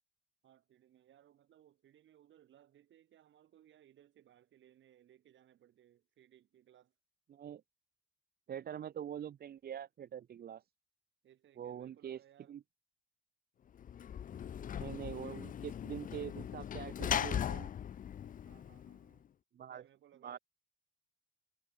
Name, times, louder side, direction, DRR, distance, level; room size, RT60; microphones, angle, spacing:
voice 1, 0.4-6.9 11.2-12.6 18.4-19.3 19.7-20.4, right 11 dB, 70° right, 4.2 m, -65 dB
voice 2, 7.3-7.6 8.5-10.6 11.6-12.2 12.5-12.6 14.8-17.7 19.5-19.8 20.2-20.4, right 9 dB, 50° right, 0.8 m, -44 dB
Sliding door / Slam, 13.8-19.2, left 9 dB, 45° left, 0.5 m, -39 dB
cardioid pair, 90°, 20 cm